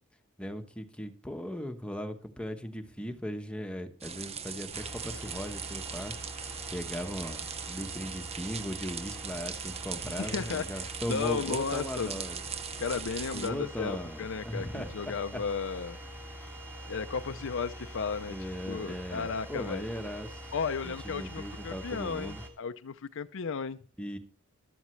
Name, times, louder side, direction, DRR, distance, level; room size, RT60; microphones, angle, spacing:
voice 1, 0.4-6.1 6.7-12.4 13.3-15.4 18.3-20.5 20.8-22.4 24.0-24.2, equal, 5° left, 6 dB, 1.1 m, -38 dB
sound 1, 4.0-13.5, right 7 dB, 30° right, 0.7 m, -40 dB
sound 2, 4.7-22.5, equal, 10° right, 2.6 m, -44 dB
voice 2, 10.2-12.1 12.8-16.0 16.9-18.3 18.7-19.9 20.5-23.8, left 5 dB, 65° left, 9 dB, 0.5 m, -34 dB
15.5 x 12.5 x 3.2 m, 0.41 s
head